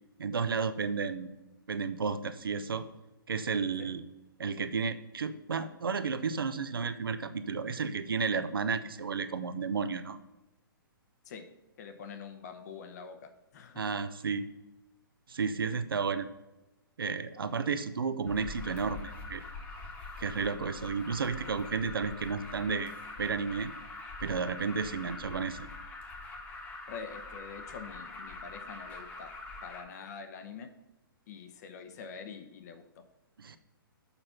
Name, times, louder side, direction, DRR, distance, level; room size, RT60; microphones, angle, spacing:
voice 1, 0.2-1.3 1.7-2.9 3.3-4.0 4.4-10.2 13.8-14.5 15.3-16.3 17.0-19.4 20.2-22.9 23.2-23.7 24.2-25.7 33.4-33.6, right 5 dB, 70° right, 11 dB, 0.6 m, -32 dB
voice 2, 11.8-13.8 26.9-29.3 29.6-30.7 31.3-32.8, left 6 dB, 45° left, 7 dB, 0.9 m, -45 dB
Alarm, 18.3-29.8, left 3 dB, 15° left, 1.2 m, -44 dB
7.0 x 4.3 x 5.5 m, 1.0 s
figure-of-eight pair, 125°, 12 cm